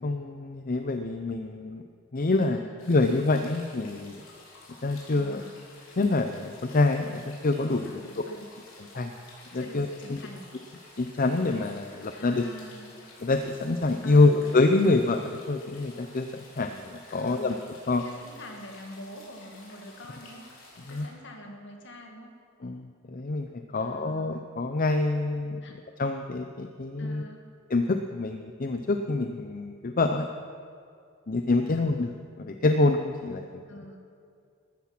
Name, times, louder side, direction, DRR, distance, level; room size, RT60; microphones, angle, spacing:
voice 1, 0.0-1.8 2.1-4.2 4.8-5.4 6.0-8.0 8.9-9.1 9.5-9.9 11.0-12.4 13.2-17.6 17.9-18.1 20.9-21.1 22.6-23.5 23.7-25.6 26.0-27.3 27.7-30.3 31.3-32.1 32.4-33.6, left 2 dB, 45° left, 7 dB, 0.6 m, -26 dB
voice 2, 2.5-3.1 5.1-5.6 7.8-8.5 9.5-10.5 12.1-13.0 14.0-14.7 17.1-17.8 18.0-20.5 20.9-22.4 23.8-24.4 25.6-25.8 27.0-27.5 31.6-32.0 33.7-34.0, equal, 60° left, 2 dB, 2.2 m, -45 dB
sound 1, 2.8-21.1, left 2 dB, 90° left, 4.0 m, -51 dB
14.5 x 13.0 x 6.0 m, 2.3 s
head